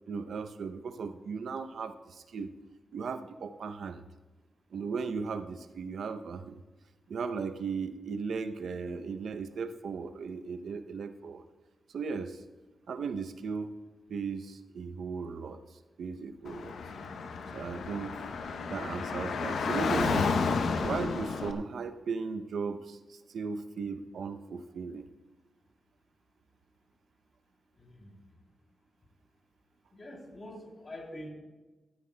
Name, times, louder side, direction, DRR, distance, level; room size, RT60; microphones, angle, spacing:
voice 1, 0.1-2.5 2.9-4.0 4.7-6.6 7.1-11.4 11.9-12.4 12.9-13.8 14.1-15.6 16.0-16.8 17.5-18.2 18.7-20.3 20.8-25.1, right 5 dB, 80° right, 10 dB, 0.6 m, -36 dB
Car / Traffic noise roadway noise, 16.5-21.5, left 4 dB, 85° left, 0.7 m, -31 dB
voice 2, 27.8-28.2 29.9-31.3, left 1 dB, 45° left, 1 dB, 3.0 m, -45 dB
15.0 x 13.0 x 2.2 m, 1.2 s
cardioid pair, 70°, 0 cm